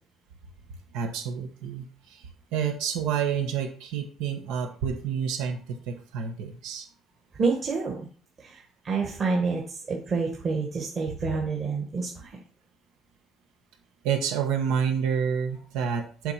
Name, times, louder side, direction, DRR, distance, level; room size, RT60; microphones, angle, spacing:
voice 1, 0.9-6.9 14.0-16.3, right 7 dB, 85° right, 4 dB, 1.8 m, -29 dB
voice 2, 7.4-8.1 8.4-12.4, right 4 dB, 35° right, -2 dB, 1.6 m, -28 dB
8.0 x 3.7 x 6.0 m, 0.41 s
cardioid pair, 135°, 0 cm